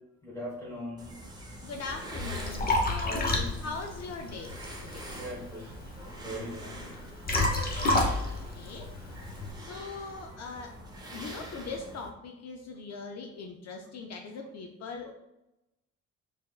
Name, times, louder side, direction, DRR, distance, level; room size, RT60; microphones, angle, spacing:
voice 1, 0.2-1.1 3.0-3.6 5.1-5.7 6.2-6.9 8.8-8.9, equal, 10° left, -5 dB, 1.4 m, -40 dB
sound 1, 1.0-12.1, right 1 dB, 15° right, 0.8 m, -45 dB
voice 2, 1.6-3.3 3.6-4.6 4.8-5.2 8.3-8.9 9.6-10.8 11.1-15.1, left 4 dB, 60° left, 3 dB, 0.5 m, -41 dB
Liquid, 1.8-9.5, left 2 dB, 30° left, 0.8 m, -31 dB
4.3 x 3.4 x 2.4 m, 0.90 s
cardioid pair, 90°, 30 cm